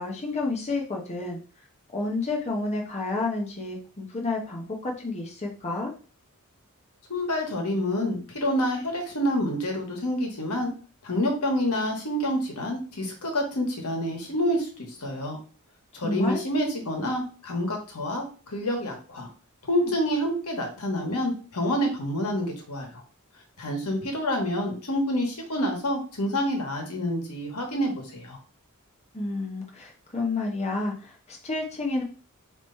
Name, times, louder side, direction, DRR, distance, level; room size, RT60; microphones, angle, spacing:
voice 1, 0.0-1.4 1.9-5.9 16.0-16.4 29.1-32.0, left 3 dB, 30° left, -1 dB, 0.8 m, -30 dB
voice 2, 7.1-10.7 11.0-15.4 15.9-18.3 18.5-19.3 19.7-22.9 23.6-28.4, equal, 85° left, 2 dB, 1.4 m, -27 dB
3.9 x 3.1 x 4.3 m, 0.38 s
head